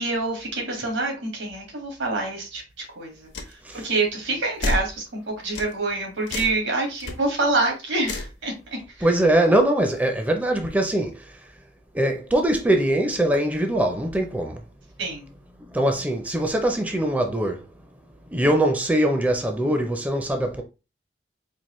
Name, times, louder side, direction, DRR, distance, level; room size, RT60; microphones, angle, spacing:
voice 1, 0.0-3.6 3.8-9.1 15.0-15.3, right 2 dB, 85° right, 1.8 m, -27 dB
sound 1, 3.3-3.5 4.6-4.9 5.6-5.7 6.3-6.6 7.0-7.1 8.0-8.3, left 2 dB, 75° left, 0.8 m, -28 dB
voice 2, 9.0-11.4 11.9-14.6 15.7-17.7 18.3-20.6, right 1 dB, 10° right, 0.4 m, -22 dB
4.4 x 2.5 x 3.0 m
head